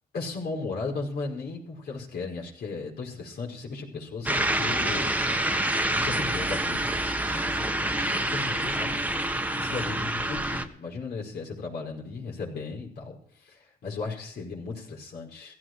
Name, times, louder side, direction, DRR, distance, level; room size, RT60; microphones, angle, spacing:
voice 1, 0.1-5.4 5.8-9.0 9.5-13.1 13.4-15.5, left 4 dB, 70° left, -2 dB, 5.2 m, -36 dB
sound 1, 4.3-10.7, right 1 dB, 10° right, 1.3 m, -27 dB
16.0 x 14.0 x 4.7 m, 0.64 s
cardioid pair, 85°, 17 cm